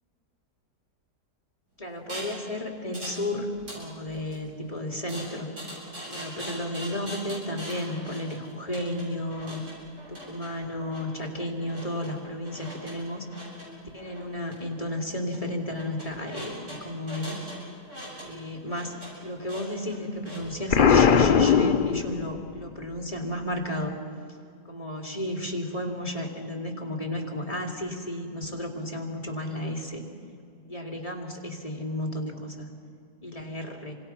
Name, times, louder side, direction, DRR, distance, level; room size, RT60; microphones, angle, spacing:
voice 1, 1.8-5.5 6.1-9.6 10.1-13.2 13.9-17.4 18.2-18.9 19.2-24.0 24.7-30.0 30.7-32.7 33.2-33.9, left 1 dB, 20° left, 2 dB, 3.0 m, -33 dB
sound 1, 2.1-2.4 2.9-3.2 3.5-4.4 5.1-20.7, right 1 dB, 80° right, 7.8 m, -42 dB
Explosion, 20.7-22.5, left 7 dB, 50° left, 0.6 m, -19 dB
29.0 x 25.5 x 5.9 m, 2.4 s
omnidirectional pair, 1.8 m